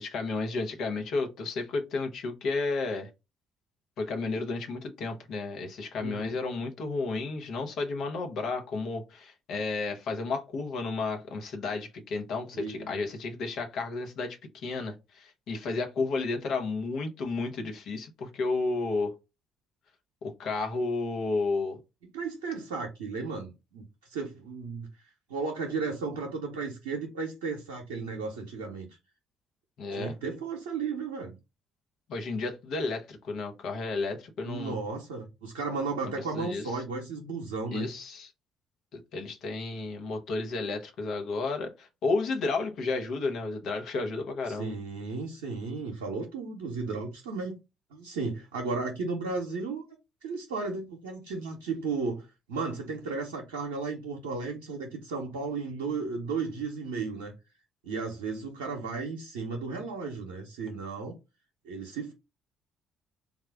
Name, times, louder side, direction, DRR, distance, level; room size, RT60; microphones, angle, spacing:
voice 1, 0.0-3.1 4.0-19.1 20.2-21.8 29.8-30.1 32.1-34.8 36.3-36.7 37.7-38.3 38.9-44.7, left 3 dB, 65° left, 0.9 m, -32 dB
voice 2, 6.0-6.4 12.5-13.1 22.1-24.9 25.3-28.9 29.9-31.4 34.5-37.9 44.5-47.6 47.9-49.8 50.2-57.3 57.8-61.2 61.6-62.1, right 4 dB, 85° right, 0.6 m, -34 dB
3.6 x 2.4 x 3.4 m
hypercardioid pair, 50°, 0 cm